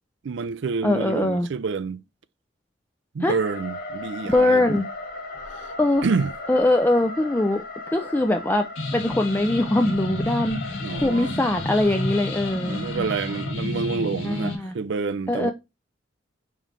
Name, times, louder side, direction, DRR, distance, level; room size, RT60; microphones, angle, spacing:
voice 1, 0.2-2.0 3.1-4.8 5.5-5.7 6.0-6.3 10.8-11.4 12.7-15.5, right 4 dB, 60° right, 0.4 m, -28 dB
voice 2, 0.8-1.5 3.2-3.3 4.2-4.9 5.8-6.0 6.5-8.7 8.9-12.8 14.2-14.8 15.3-15.5, left 1 dB, 10° left, 0.4 m, -22 dB
sound 1, 3.4-13.5, left 3 dB, 50° left, 1.6 m, -37 dB
sound 2, 8.8-14.6, left 2 dB, 65° left, 1.7 m, -31 dB
7.5 x 3.1 x 4.0 m
head